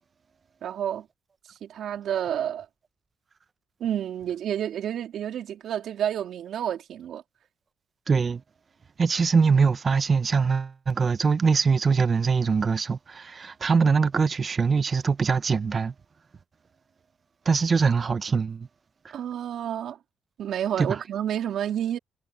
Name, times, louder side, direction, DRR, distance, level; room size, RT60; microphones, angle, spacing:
voice 1, 0.6-1.1 1.6-2.7 3.8-7.2 19.1-20.0 20.4-22.0, right 10 dB, 70° right, 3.9 m, -29 dB
voice 2, 8.1-8.4 9.0-15.9 17.5-18.7 20.8-21.0, right 5 dB, 40° right, 0.9 m, -23 dB
cardioid pair, 90°, 0 cm